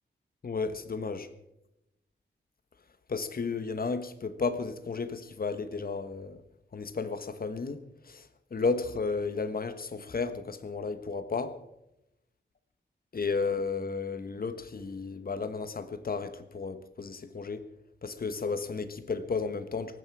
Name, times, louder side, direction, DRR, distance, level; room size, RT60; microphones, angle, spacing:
voice 1, 0.4-1.3 3.1-6.4 6.7-11.6 13.1-17.6 18.0-20.0, left 4 dB, 50° left, 1.3 m, -33 dB
18.5 x 14.5 x 4.8 m
wide cardioid pair, 115°, 19 cm